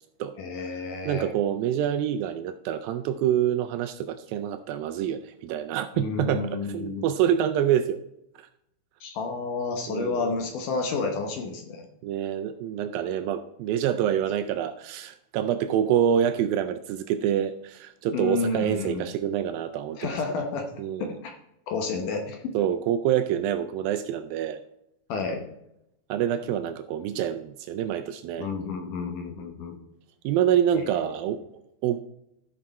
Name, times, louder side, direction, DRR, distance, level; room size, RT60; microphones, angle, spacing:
voice 1, 0.4-1.3 5.9-7.0 9.0-11.9 18.1-19.1 19.9-20.7 21.0-21.3 21.7-22.4 25.1-25.5 28.4-29.8 30.7-31.1, left 4 dB, 70° left, 4 dB, 2.2 m, -30 dB
voice 2, 1.1-8.0 9.9-10.3 12.0-20.0 20.8-21.1 22.5-24.6 26.1-28.5 30.2-32.0, right 10 dB, 80° right, 9 dB, 2.1 m, -26 dB
14.5 x 6.1 x 4.2 m, 0.82 s
omnidirectional pair, 4.5 m